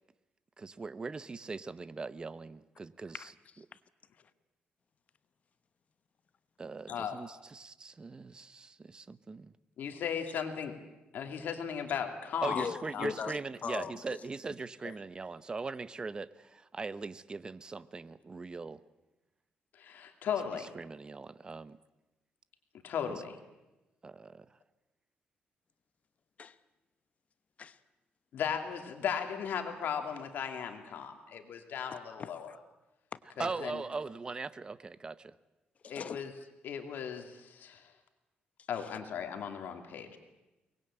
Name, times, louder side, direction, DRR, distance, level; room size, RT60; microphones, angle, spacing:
voice 1, 0.6-3.3 6.6-9.5 12.4-18.8 20.5-21.8 23.1-23.2 24.0-24.5 33.4-35.4, right 4 dB, 25° right, 15 dB, 0.8 m, -40 dB
voice 2, 3.1-3.8 6.9-7.0 12.3-14.3 14.8-15.0 26.4-26.6 27.6-27.8 32.2-32.6 33.1-33.2 35.8-36.2 38.8-39.0, left 6 dB, 45° left, 14 dB, 1.0 m, -41 dB
voice 3, 9.8-10.7 11.1-13.1 19.8-20.7 22.8-23.4 28.3-32.5 33.4-33.8 35.9-36.3 36.6-37.8 38.7-40.2, left 7 dB, 75° left, 5 dB, 2.8 m, -36 dB
23.5 x 20.0 x 8.9 m, 1.0 s
cardioid pair, 130°, 3 cm